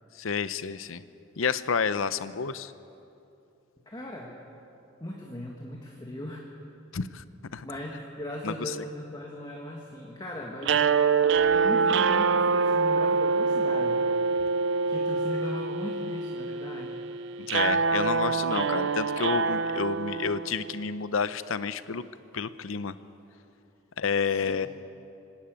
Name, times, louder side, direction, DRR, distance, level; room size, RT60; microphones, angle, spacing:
voice 1, 0.2-1.0 1.4-2.7 6.9-7.2 7.5-7.7 8.4-8.7 17.4-22.0 22.3-22.9 24.0-24.7, left 5 dB, 70° left, 14 dB, 0.6 m, -30 dB
voice 2, 3.9-4.3 5.0-6.4 7.6-10.9 11.5-14.1 14.9-17.0 24.2-24.7, equal, 20° left, -1 dB, 1.7 m, -38 dB
sound 1, 10.6-20.8, right 5 dB, 60° right, 0.5 m, -25 dB
25.0 x 12.0 x 9.0 m, 2.8 s
head